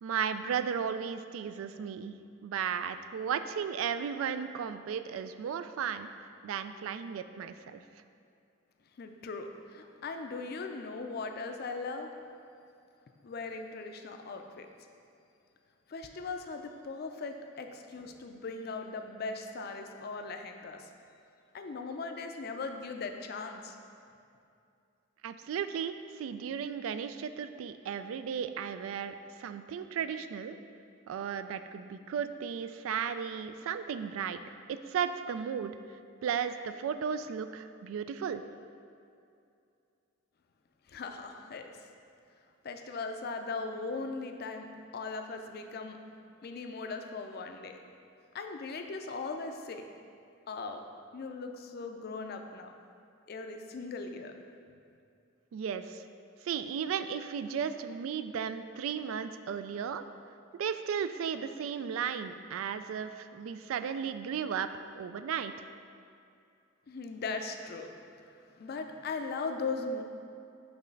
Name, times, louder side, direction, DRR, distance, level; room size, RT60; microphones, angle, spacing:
voice 1, 0.0-2.2 2.4-6.1 6.4-7.8 25.2-29.1 29.4-30.6 31.1-34.4 34.7-35.7 36.2-38.4 55.5-56.0 56.4-60.0 60.5-64.7 65.0-65.5, right 7 dB, 90° right, 10 dB, 0.3 m, -35 dB
voice 2, 9.0-12.1 13.2-14.7 15.9-20.9 21.5-23.8 40.9-41.9 42.6-44.7 44.9-46.0 46.4-47.8 48.3-49.8 50.5-50.8 51.1-52.7 53.3-54.3 66.9-70.0, left 3 dB, 50° left, 5 dB, 0.4 m, -39 dB
6.0 x 3.2 x 5.2 m, 2.5 s
head